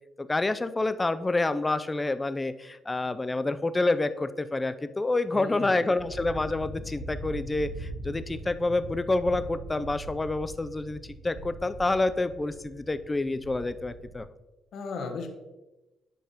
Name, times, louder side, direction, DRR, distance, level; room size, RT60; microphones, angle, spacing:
voice 1, 0.2-14.3, left 2 dB, 20° left, 13 dB, 0.4 m, -28 dB
voice 2, 5.3-5.9 14.7-15.3, left 4 dB, 70° left, 4 dB, 1.2 m, -36 dB
sound 1, 5.9-14.2, right 1 dB, 80° right, 2.7 m, -41 dB
11.0 x 5.3 x 3.0 m, 1.1 s
cardioid pair, 90°, 0 cm